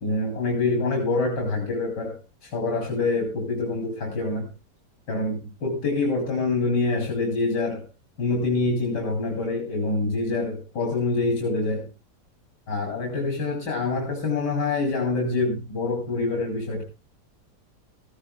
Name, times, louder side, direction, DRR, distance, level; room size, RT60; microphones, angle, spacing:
voice 1, 0.0-4.5 5.1-7.9 8.2-11.9 12.7-16.8, left 3 dB, 75° left, 1 dB, 3.4 m, -26 dB
16.5 x 15.5 x 2.2 m, 0.27 s
omnidirectional pair, 1.8 m